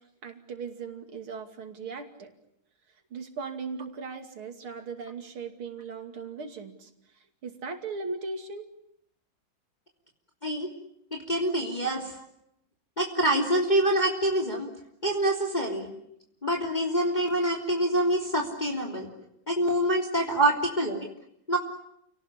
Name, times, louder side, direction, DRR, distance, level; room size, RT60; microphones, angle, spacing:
voice 1, 0.2-2.3 3.1-6.9 7.1-8.7 12.1-12.3 16.1-16.2 20.5-20.6, right 4 dB, 90° right, 5 dB, 3.4 m, -38 dB
voice 2, 11.1-12.1 13.0-14.7 15.0-15.9 16.4-19.1 19.5-21.0 21.5-21.6, right 1 dB, 20° left, 0 dB, 3.2 m, -26 dB
29.0 x 18.5 x 10.0 m, 0.78 s
omnidirectional pair, 2.3 m